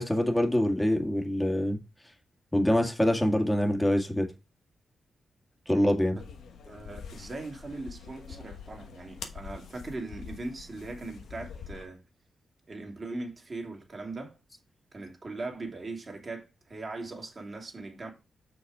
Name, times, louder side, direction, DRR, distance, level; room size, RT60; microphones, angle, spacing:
voice 1, 0.0-1.8 2.5-4.3 5.7-6.2, left 1 dB, 10° left, 1.8 m, -25 dB
sound 1, 6.2-11.8, left 6 dB, 85° left, 1.1 m, -45 dB
voice 2, 6.6-12.0 12.7-14.4 14.9-18.1, right 2 dB, 40° right, 2.6 m, -40 dB
6.4 x 5.3 x 4.8 m
cardioid pair, 65°, 0 cm